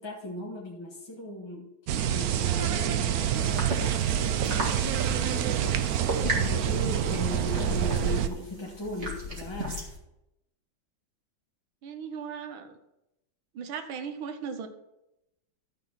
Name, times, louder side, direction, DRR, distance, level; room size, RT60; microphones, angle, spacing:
voice 1, 0.0-1.7 2.1-5.0 5.3-5.7 6.3-9.8, left 1 dB, 15° left, -4 dB, 1.4 m, -38 dB
sound 1, 1.9-8.3, right 10 dB, 70° right, 0.9 m, -27 dB
sound 2, 3.4-10.0, equal, 35° right, 2.2 m, -35 dB
voice 2, 11.8-12.7 13.5-14.7, right 6 dB, 85° right, 8 dB, 1.7 m, -37 dB
12.5 x 4.4 x 5.7 m, 0.88 s
omnidirectional pair, 2.2 m